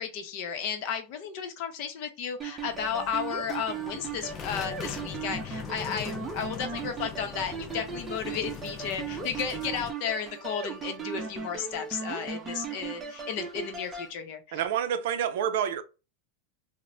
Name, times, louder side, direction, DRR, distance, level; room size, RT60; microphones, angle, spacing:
voice 1, 0.0-14.6, left 7 dB, 55° left, 0.7 m, -34 dB
sound 1, 2.4-14.1, right 6 dB, 20° right, 0.6 m, -37 dB
sound 2, 2.7-9.9, left 8 dB, 30° left, 0.3 m, -42 dB
voice 2, 14.5-15.8, right 9 dB, 70° right, 0.4 m, -28 dB
3.0 x 2.1 x 2.6 m
supercardioid pair, 130°, 0 cm